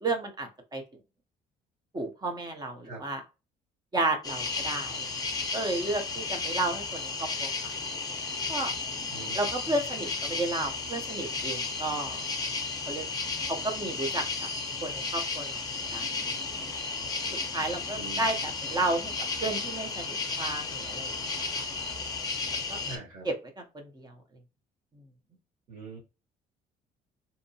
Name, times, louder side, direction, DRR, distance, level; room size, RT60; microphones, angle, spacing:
voice 1, 0.0-0.8 1.9-3.2 3.9-5.1 5.5-7.7 8.5-8.7 9.3-12.2 12.9-13.1 13.5-14.5 14.8-15.6 15.9-16.3 17.5-19.1 19.4-21.1 22.7-22.8 23.2-24.1, right 2 dB, 25° right, 4 dB, 0.6 m, -32 dB
sound 1, 4.2-23.0, left 4 dB, 20° left, 0.6 m, -33 dB
voice 2, 17.9-18.4 22.8-23.3 25.7-26.0, right 4 dB, 50° right, -3 dB, 1.1 m, -43 dB
2.7 x 2.0 x 2.6 m, 0.29 s
cardioid pair, 110°, 17 cm